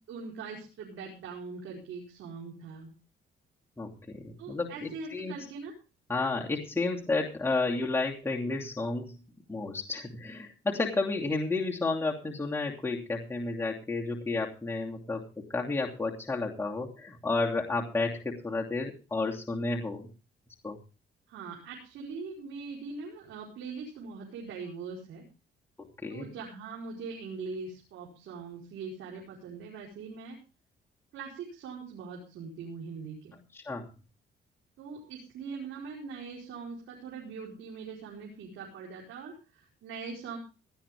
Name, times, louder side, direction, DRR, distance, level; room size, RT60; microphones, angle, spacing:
voice 1, 0.1-2.9 4.4-5.7 21.3-25.2 26.1-30.4 31.1-33.4 34.8-40.4, right 4 dB, 80° right, -2 dB, 4.8 m, -42 dB
voice 2, 3.8-5.3 6.1-9.2 9.5-20.1 20.6-20.8 25.8-26.3 33.5-33.9, left 3 dB, 10° left, -1 dB, 2.8 m, -31 dB
18.0 x 11.5 x 3.6 m, 0.32 s
cardioid pair, 90°, 20 cm